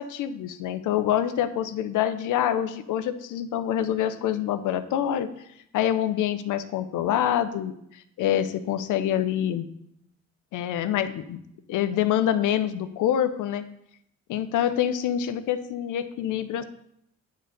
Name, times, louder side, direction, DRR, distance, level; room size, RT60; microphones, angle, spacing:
voice 1, 0.0-5.3 5.7-9.7 10.5-11.4 11.7-13.6 14.3-16.6, left 10 dB, 85° left, 11 dB, 0.7 m, -26 dB
10.0 x 3.8 x 6.6 m, 0.74 s
cardioid pair, 90°, 30 cm